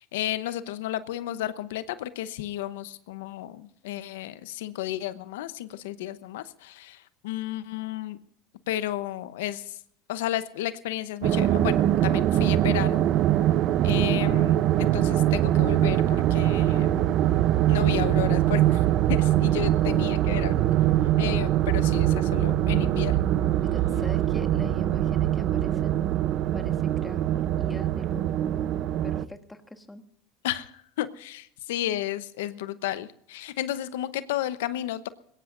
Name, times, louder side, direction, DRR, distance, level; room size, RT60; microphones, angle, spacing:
voice 1, 0.0-8.2 8.7-9.8 10.1-13.0 13.8-17.3 17.7-20.6 21.2-23.2 30.4-35.1, left 13 dB, 85° left, 14 dB, 0.9 m, -33 dB
sound 1, 11.2-29.3, right 12 dB, 50° right, 0.7 m, -23 dB
voice 2, 23.6-26.0 26.5-28.2 29.0-30.0, left 2 dB, 10° left, 7 dB, 1.4 m, -42 dB
21.5 x 17.5 x 2.6 m, 0.68 s
supercardioid pair, 110°, 0 cm